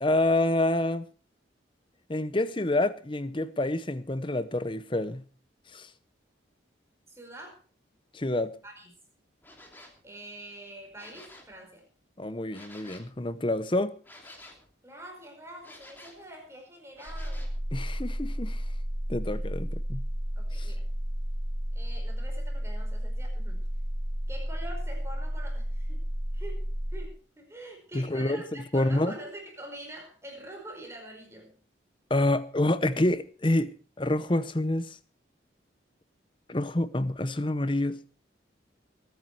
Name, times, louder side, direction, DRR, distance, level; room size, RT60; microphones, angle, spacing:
voice 1, 0.0-1.0 2.1-5.2 5.7-5.9 8.1-8.6 12.2-13.9 17.7-18.6 19.1-20.0 20.6-20.7 27.9-28.4 28.7-29.2 32.1-35.0 36.5-38.0, left 1 dB, 25° left, 0.8 m, -27 dB
voice 2, 7.1-7.6 8.6-8.9 10.0-11.8 14.8-17.5 19.3-19.5 20.4-20.9 21.7-23.6 24.3-26.0 26.3-26.6 26.9-31.5, right 1 dB, 15° right, 4.9 m, -45 dB
sound 1, 9.4-10.0 10.8-11.6 12.5-13.1 14.0-14.7 15.6-16.3 16.9-17.6, left 1 dB, 10° left, 2.9 m, -50 dB
sound 2, 17.1-27.1, equal, 50° right, 1.9 m, -32 dB
21.5 x 9.7 x 4.6 m
head